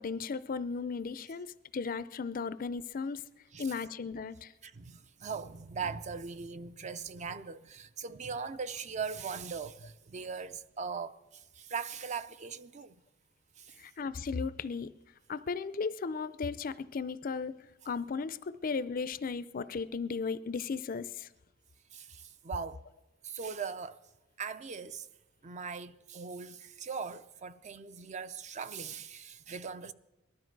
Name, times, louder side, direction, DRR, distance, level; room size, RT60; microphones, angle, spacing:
voice 1, 0.0-1.5 1.7-3.2 3.6-4.5 13.8-14.9 15.3-21.3, left 5 dB, 45° left, 0.4 m, -36 dB
voice 2, 4.6-13.0 13.6-13.8 21.9-22.8 23.2-24.0 24.4-25.1 25.4-29.9, right 5 dB, 35° right, 0.5 m, -40 dB
19.0 x 12.5 x 4.6 m
head